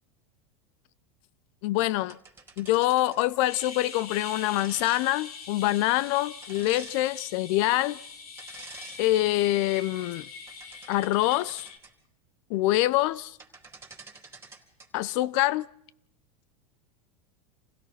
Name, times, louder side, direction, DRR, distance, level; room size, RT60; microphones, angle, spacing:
voice 1, 1.6-2.2 2.6-8.0 9.0-10.3 10.9-11.7 12.5-13.4 14.9-15.7, left 16 dB, 60° left, 0.7 m, -25 dB
sound 1, 2.1-3.3 4.6-5.0 6.4-7.0 8.4-9.0 9.5-9.7 10.3-11.9 13.1-13.2 13.4-14.9, right 4 dB, 15° right, 3.9 m, -48 dB
sound 2, 3.4-11.8, left 5 dB, 75° left, 3.4 m, -43 dB
27.5 x 16.5 x 5.8 m
hypercardioid pair, 100°, 19 cm